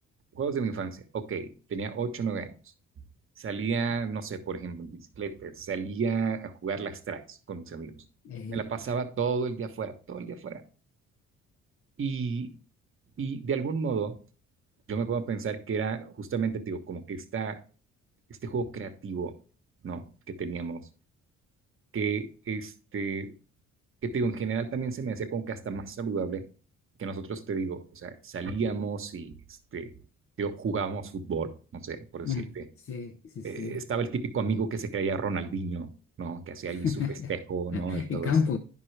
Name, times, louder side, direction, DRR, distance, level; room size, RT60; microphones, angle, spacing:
voice 1, 0.3-2.5 3.4-8.0 8.5-10.6 12.0-12.5 13.2-14.2 14.9-17.6 18.4-19.4 19.8-20.9 21.9-23.3 24.0-26.4 27.0-29.3 29.7-29.9 30.4-32.6 33.4-35.9 36.2-36.9 37.3-38.3, right 5 dB, 45° right, 1.1 m, -32 dB
voice 2, 8.2-8.6 32.2-32.5 32.9-33.8 36.7-37.3 37.7-38.6, left 6 dB, 45° left, 0.7 m, -30 dB
9.8 x 5.6 x 3.2 m
cardioid pair, 90°, 30 cm